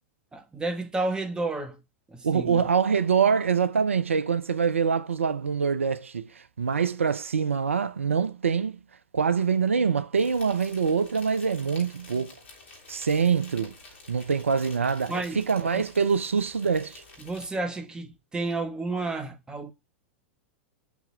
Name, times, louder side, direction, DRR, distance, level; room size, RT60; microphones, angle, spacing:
voice 1, 0.3-1.8 2.1-2.6 15.1-15.4 15.7-15.8 17.2-19.7, right 2 dB, 10° right, 1.3 m, -31 dB
voice 2, 2.2-8.8 9.1-12.3 12.9-13.7 14.1-17.0, right 6 dB, 85° right, 0.7 m, -25 dB
Insect, 10.1-17.5, left 3 dB, 70° left, 3.5 m, -50 dB
6.0 x 5.9 x 7.1 m
hypercardioid pair, 100°, 7 cm